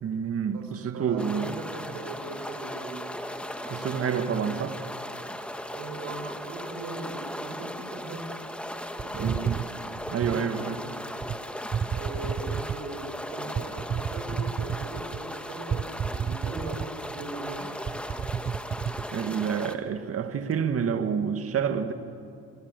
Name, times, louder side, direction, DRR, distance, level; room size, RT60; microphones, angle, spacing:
voice 1, 0.0-1.6 3.7-4.8 9.2-9.6 10.1-10.8 19.1-21.9, right 7 dB, 50° right, 2.0 m, -28 dB
voice 2, 0.5-3.1 5.7-8.3 9.0-9.4 10.3-10.7 11.9-17.7, right 3 dB, 65° right, 6.2 m, -39 dB
sound 1, 1.2-19.8, equal, 5° left, 1.9 m, -37 dB
sound 2, 9.0-10.4 11.2-11.4 11.7-12.9 13.5-15.2 15.7-17.1 17.5-17.6 17.9-19.1, right 7 dB, 30° right, 0.7 m, -31 dB
24.5 x 24.0 x 8.5 m
supercardioid pair, 70°, 30 cm